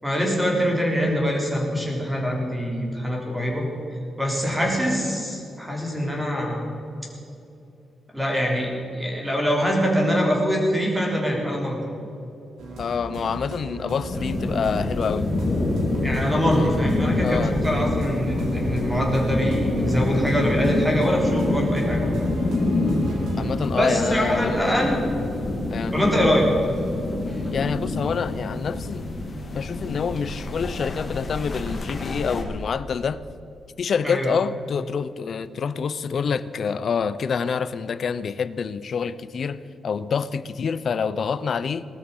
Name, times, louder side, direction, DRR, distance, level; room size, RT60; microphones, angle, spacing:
voice 1, 0.0-3.7 4.2-6.7 8.1-11.8 16.0-22.3 23.7-25.0 25.9-26.5 27.3-27.5 34.0-34.3, equal, 5° right, -1 dB, 3.8 m, -24 dB
sound 1, 12.6-23.7, right 1 dB, 90° right, 3.5 m, -36 dB
voice 2, 12.8-15.3 16.5-16.7 17.2-17.6 23.4-24.8 25.7-25.9 27.5-29.1 29.5-33.2 33.8-41.8, left 6 dB, 50° left, 15 dB, 0.7 m, -27 dB
sound 2, 14.1-32.4, left 2 dB, 30° left, 2.4 m, -26 dB
19.0 x 13.0 x 5.6 m, 2.7 s
wide cardioid pair, 140°, 0 cm